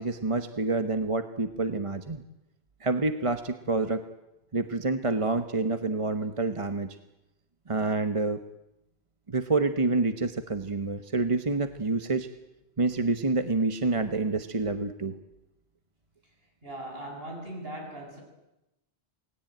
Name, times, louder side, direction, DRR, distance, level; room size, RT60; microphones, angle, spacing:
voice 1, 0.0-2.2 2.8-4.0 4.5-7.0 7.7-8.4 9.3-12.3 12.8-15.2, right 3 dB, 30° right, 8 dB, 1.1 m, -27 dB
voice 2, 16.6-18.2, right 1 dB, 55° right, 1 dB, 8.1 m, -39 dB
28.5 x 19.5 x 9.1 m, 0.93 s
omnidirectional pair, 1.2 m